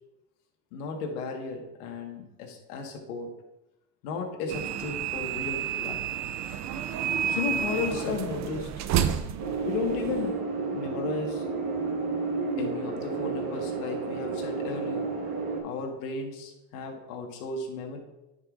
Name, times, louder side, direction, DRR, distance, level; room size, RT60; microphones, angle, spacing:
voice 1, 0.7-3.3 4.0-6.1 7.3-8.7 9.6-10.4 10.7-11.5 12.6-15.1 15.6-18.0, left 4 dB, 70° left, 2 dB, 1.7 m, -34 dB
sound 1, 4.5-10.3, right 9 dB, 40° right, 0.6 m, -30 dB
sound 2, 9.4-15.6, right 4 dB, 55° right, 1.7 m, -31 dB
9.7 x 5.7 x 2.6 m, 0.96 s
supercardioid pair, 100°, 45 cm